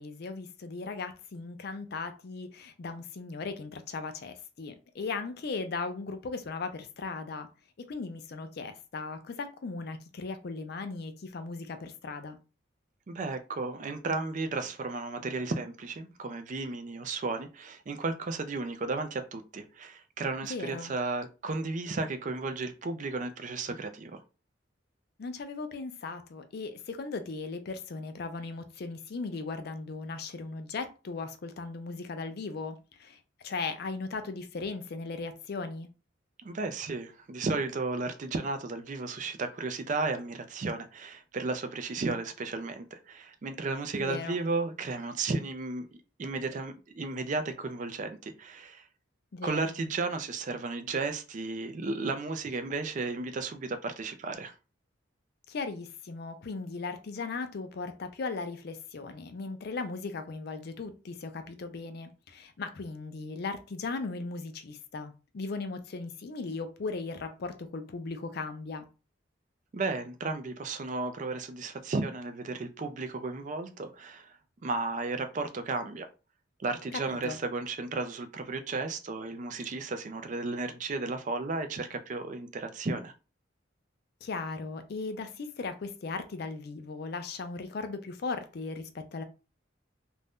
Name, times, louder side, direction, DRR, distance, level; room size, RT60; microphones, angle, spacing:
voice 1, 0.0-7.5 7.9-12.4 20.5-20.9 25.2-35.9 44.0-44.4 49.3-49.8 55.5-68.9 76.9-77.4 84.2-89.2, left 4 dB, 55° left, 0.4 m, -37 dB
voice 2, 13.1-24.2 36.4-45.9 46.2-48.9 49.4-54.5 69.7-74.4 74.6-76.1 76.6-83.1, right 3 dB, 40° right, 0.4 m, -34 dB
2.6 x 2.2 x 3.4 m
head